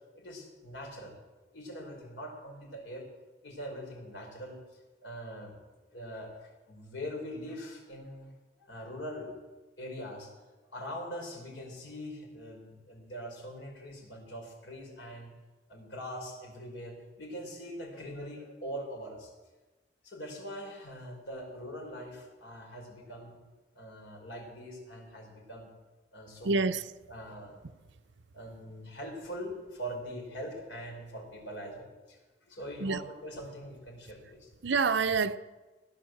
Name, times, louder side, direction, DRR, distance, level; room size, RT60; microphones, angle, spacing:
voice 1, 0.1-1.1 1.5-3.0 3.4-4.6 5.0-5.6 5.9-8.3 8.6-9.4 9.8-10.3 10.7-15.3 15.7-19.3 20.0-23.4 23.7-25.7 26.1-26.6 27.1-27.6 28.3-34.5, equal, 80° left, 5.1 m, -42 dB
voice 2, 26.4-26.9 32.8-33.0 34.6-35.4, right 4 dB, 75° right, 0.7 m, -27 dB
16.5 x 10.5 x 7.8 m
head